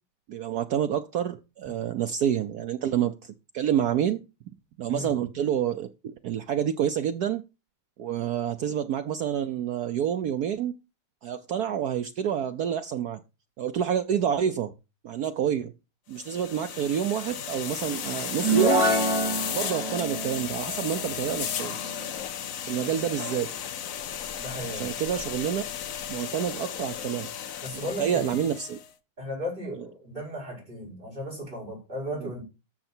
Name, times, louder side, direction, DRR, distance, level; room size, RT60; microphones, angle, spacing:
voice 1, 0.3-4.2 4.8-7.4 8.0-10.8 11.2-13.2 13.6-14.7 15.0-15.7 16.1-18.8 19.5-21.8 22.7-23.5 24.7-25.6 26.1-27.3 28.0-28.8 32.2-32.3, right 9 dB, 85° right, 0.8 m, -28 dB
sound 1, 16.1-28.9, left 9 dB, 70° left, 0.8 m, -35 dB
sound 2, 18.3-22.0, right 2 dB, 55° right, 5.2 m, -27 dB
voice 2, 24.4-24.9 27.6-28.3 29.2-32.4, equal, 20° right, 5.9 m, -35 dB
13.5 x 6.6 x 4.4 m
omnidirectional pair, 2.4 m